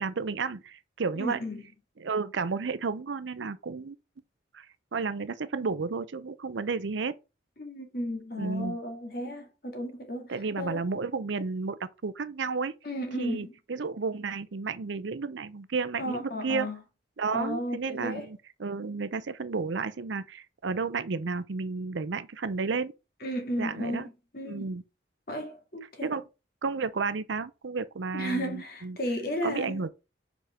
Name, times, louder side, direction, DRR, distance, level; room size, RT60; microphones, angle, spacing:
voice 1, 0.0-1.4 2.0-4.0 4.5-4.7 4.9-7.1 8.4-8.8 10.3-12.7 13.2-16.7 17.2-22.9 23.6-24.1 24.5-24.8 26.0-26.2 26.6-29.0 29.4-29.9, right 4 dB, 70° right, 0.6 m, -32 dB
voice 2, 1.2-1.6 7.6-10.9 12.8-13.5 16.0-16.8 17.3-18.3 23.2-24.6 25.3-26.2 28.1-29.8, equal, 50° left, 2.2 m, -34 dB
5.2 x 5.0 x 5.8 m
head